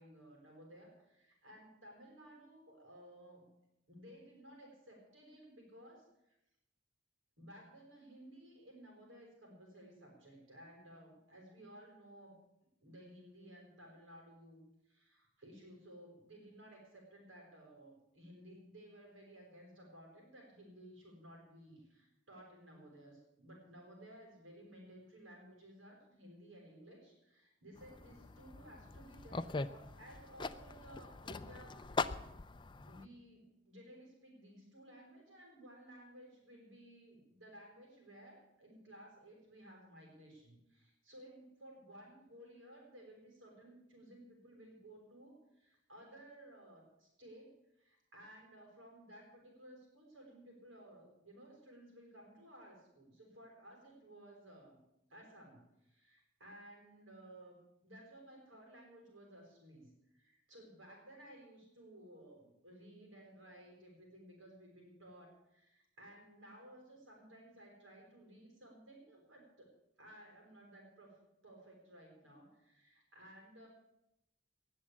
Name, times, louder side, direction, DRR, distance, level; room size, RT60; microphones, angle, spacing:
voice 1, 0.0-3.5 3.9-6.4 7.4-12.4 12.8-32.3 32.9-54.8 55.1-69.7 70.0-73.7, right 1 dB, 80° right, -2 dB, 5.9 m, -57 dB
sound 1, 27.8-33.1, left 3 dB, 25° left, 0.4 m, -42 dB
18.5 x 7.5 x 8.5 m, 0.86 s
head